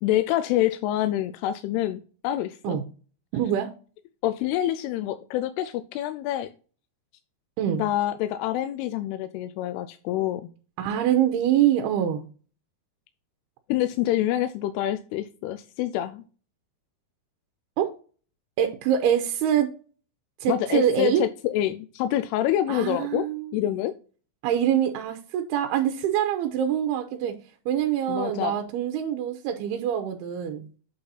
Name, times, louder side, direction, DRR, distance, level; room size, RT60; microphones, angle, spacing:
voice 1, 0.0-2.8 4.2-6.5 7.7-10.5 13.7-16.2 20.5-23.3 23.5-23.9 28.1-28.6, left 13 dB, 90° left, 10 dB, 2.6 m, -26 dB
voice 2, 3.3-3.7 7.6-7.8 10.8-12.2 17.8-17.9 18.6-19.7 20.4-21.2 22.7-23.8 24.4-27.4 27.7-30.7, right 10 dB, 90° right, 6 dB, 2.7 m, -25 dB
8.4 x 4.1 x 3.9 m, 0.37 s
omnidirectional pair, 4.5 m